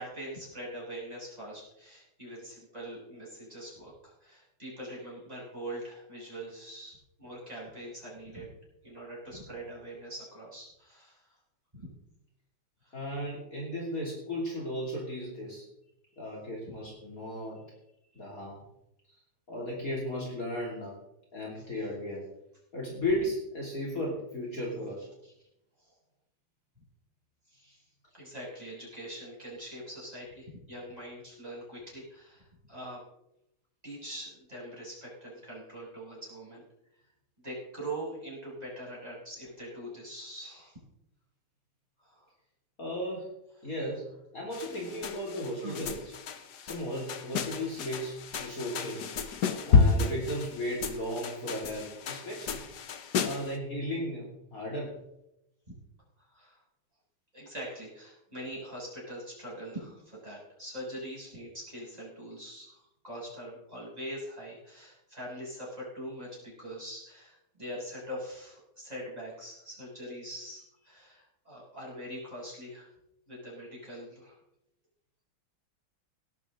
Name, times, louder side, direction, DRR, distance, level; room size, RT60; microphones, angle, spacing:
voice 1, 0.0-8.6 8.8-11.2 11.8-11.9 12.8-13.0 25.2-25.3 27.5-27.8 28.1-33.0 33.8-36.6 37.4-40.8 42.0-42.3 45.6-45.8 52.8-53.0 55.7-55.8 56.3-56.6 57.3-72.9 73.3-74.4, right 1 dB, 15° right, -6 dB, 6.7 m, -43 dB
voice 2, 12.9-15.6 16.2-17.6 18.2-18.6 19.5-20.9 21.3-22.2 22.7-25.0 42.8-43.3 43.6-44.1 44.3-46.0 46.6-49.0 49.7-52.6 53.2-54.9, left 1 dB, 40° left, -3 dB, 3.3 m, -35 dB
sound 1, 44.5-53.6, left 5 dB, 55° left, 1.4 m, -30 dB
18.0 x 12.0 x 3.8 m, 0.84 s
omnidirectional pair, 2.4 m